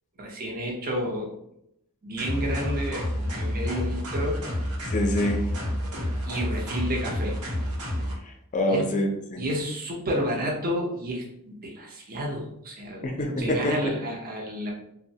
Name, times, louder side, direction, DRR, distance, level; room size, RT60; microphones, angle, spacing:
voice 1, 0.2-1.3 2.0-4.4 6.3-7.4 8.7-8.9 9.4-13.0 13.4-14.7, equal, 40° right, -2 dB, 0.6 m, -31 dB
sound 1, 2.2-8.1, equal, 80° right, 0.8 m, -29 dB
voice 2, 4.9-5.5 8.3-9.4 13.0-13.9, left 1 dB, 35° left, 3 dB, 0.4 m, -26 dB
3.0 x 2.0 x 2.7 m, 0.78 s
head